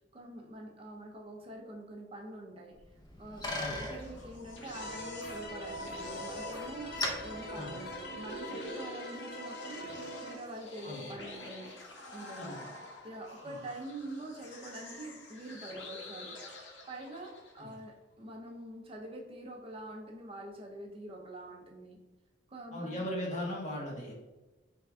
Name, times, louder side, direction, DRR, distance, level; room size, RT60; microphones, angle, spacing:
voice 1, 0.1-2.7 3.2-6.9 7.2-9.9 10.2-11.7 12.1-12.7 13.0-16.3 16.9-22.0 22.5-23.1, right 1 dB, 30° right, 1 dB, 0.5 m, -45 dB
Bicycle, 2.8-8.5, left 1 dB, 25° left, 0.7 m, -41 dB
sound 1, 3.7-17.7, left 1 dB, 90° left, 0.9 m, -48 dB
sound 2, 4.7-10.3, left 1 dB, 60° left, 0.8 m, -42 dB
voice 2, 22.7-24.1, left 1 dB, 40° left, -3 dB, 1.3 m, -38 dB
4.5 x 3.4 x 3.5 m, 1.1 s
head